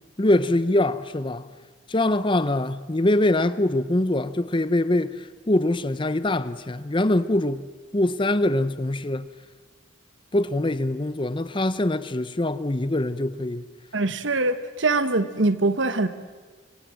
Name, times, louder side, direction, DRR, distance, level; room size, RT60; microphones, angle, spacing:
voice 1, 0.2-1.5 1.9-7.6 7.9-9.3 10.3-13.6, left 1 dB, 25° left, 0.7 m, -23 dB
voice 2, 13.9-16.1, right 2 dB, 70° right, 1.4 m, -23 dB
26.0 x 25.5 x 7.6 m
head